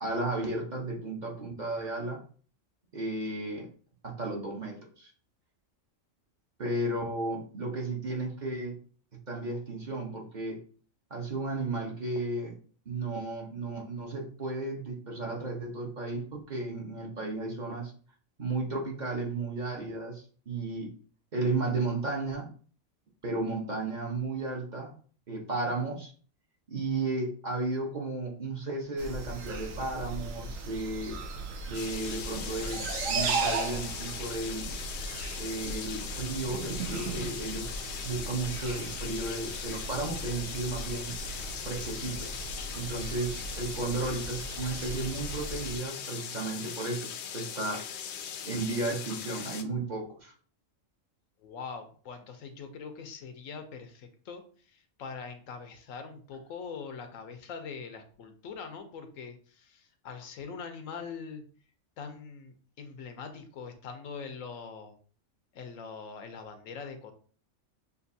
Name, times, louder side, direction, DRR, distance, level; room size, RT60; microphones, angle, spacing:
voice 1, 0.0-2.2 2.9-3.7 4.0-5.1 6.6-8.8 9.3-10.6 11.1-12.6 12.9-17.9 18.4-20.9 21.3-22.5 23.2-24.9 25.3-26.1 26.7-31.2 31.7-34.8 35.4-41.2 41.6-42.3 42.7-47.1 47.3-47.8 48.4-50.3, right 2 dB, 40° right, 0 dB, 0.9 m, -34 dB
sound 1, 29.0-45.8, right 3 dB, 85° right, 1.1 m, -37 dB
sound 2, 31.7-49.6, left 8 dB, 65° left, 0.8 m, -40 dB
voice 2, 42.9-43.2 51.4-54.4 54.7-61.4 62.0-64.9 65.5-67.1, left 5 dB, 90° left, 7 dB, 1.1 m, -43 dB
6.7 x 2.6 x 2.7 m, 0.43 s
omnidirectional pair, 1.3 m